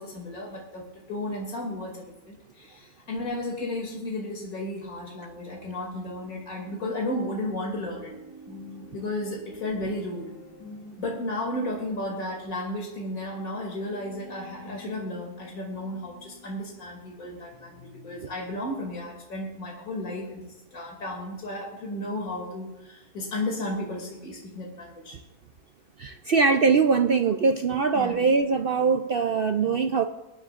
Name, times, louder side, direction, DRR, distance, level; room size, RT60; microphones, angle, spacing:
voice 1, 0.0-8.1 8.9-10.3 11.0-20.4 20.7-25.2 27.9-28.2, left 1 dB, 60° left, -1 dB, 3.0 m, -33 dB
sound 1, 7.1-17.2 17.5-18.3, left 1 dB, 45° left, 3.2 m, -48 dB
voice 2, 26.0-30.0, right 5 dB, 60° right, 6 dB, 0.6 m, -22 dB
23.0 x 9.7 x 2.5 m, 1.0 s
omnidirectional pair, 1.6 m